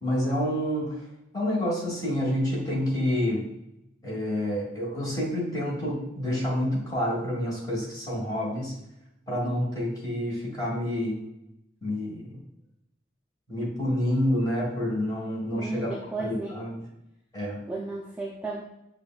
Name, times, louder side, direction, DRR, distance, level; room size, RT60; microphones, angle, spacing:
voice 1, 0.0-1.0 1.3-3.4 4.0-8.8 9.3-11.2 11.8-12.4 13.5-16.8 17.3-17.6, left 1 dB, 20° left, -4 dB, 1.3 m, -28 dB
voice 2, 15.5-16.6 17.7-18.6, right 2 dB, 10° right, -4 dB, 0.3 m, -33 dB
6.1 x 2.3 x 2.3 m, 0.88 s
head